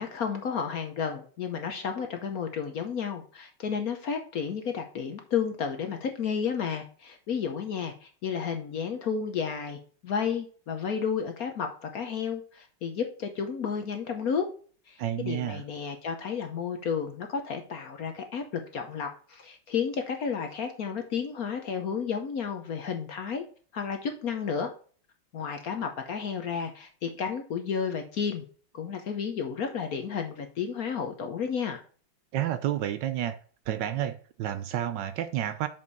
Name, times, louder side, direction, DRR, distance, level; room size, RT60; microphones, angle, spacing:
voice 1, 0.0-14.5 14.9-23.4 23.7-24.7 25.3-28.4 28.7-31.8, left 6 dB, 60° left, 1.1 m, -32 dB
voice 2, 15.0-15.6 32.3-33.4 33.7-35.7, right 11 dB, 75° right, 1.1 m, -30 dB
7.1 x 5.1 x 4.0 m
omnidirectional pair, 2.2 m